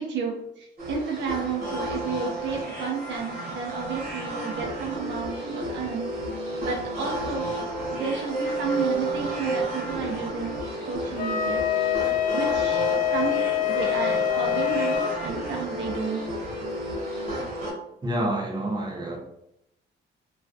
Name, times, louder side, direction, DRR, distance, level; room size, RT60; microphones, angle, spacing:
voice 1, 0.0-6.1 6.6-7.5 7.9-10.5 10.9-11.6 12.3-12.8 13.1-16.3, right 6 dB, 65° right, 1 dB, 0.4 m, -32 dB
sound 1, 0.8-17.7, right 1 dB, 50° right, 0.9 m, -31 dB
Wind instrument woodwind instrument, 11.2-15.1, left 12 dB, 45° left, 0.4 m, -25 dB
voice 2, 18.0-19.2, right 1 dB, 20° right, -1 dB, 0.7 m, -28 dB
2.3 x 2.1 x 2.5 m, 0.80 s
cardioid pair, 90°, 20 cm